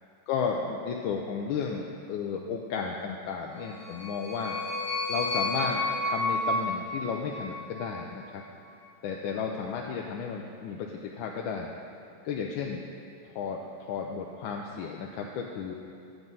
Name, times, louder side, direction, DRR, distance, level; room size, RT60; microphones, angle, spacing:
voice 1, 0.3-4.6 5.1-8.4 9.0-11.7 12.2-12.8 13.2-15.7, left 6 dB, 85° left, 0 dB, 1.4 m, -33 dB
sound 1, 3.7-8.0, left 2 dB, 70° left, 0.5 m, -31 dB
8.0 x 7.5 x 5.4 m, 2.5 s
omnidirectional pair, 2.1 m